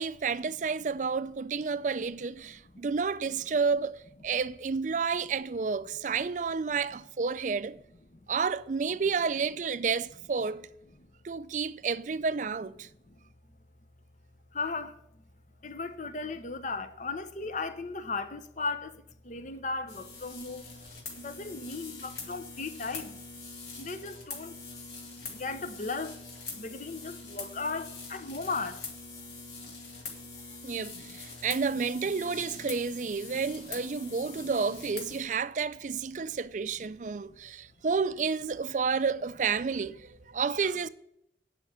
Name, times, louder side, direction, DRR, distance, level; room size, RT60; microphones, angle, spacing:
voice 1, 0.0-7.8 8.3-10.7 11.2-12.9 30.6-40.9, right 5 dB, 45° right, 0.4 m, -30 dB
voice 2, 14.5-14.9 15.6-18.9 19.3-20.6 21.2-23.1 23.8-24.5 25.4-26.1 26.6-28.7, left 3 dB, 45° left, 0.8 m, -36 dB
sound 1, 19.9-35.2, left 4 dB, 65° left, 2.8 m, -44 dB
9.8 x 5.9 x 8.1 m
head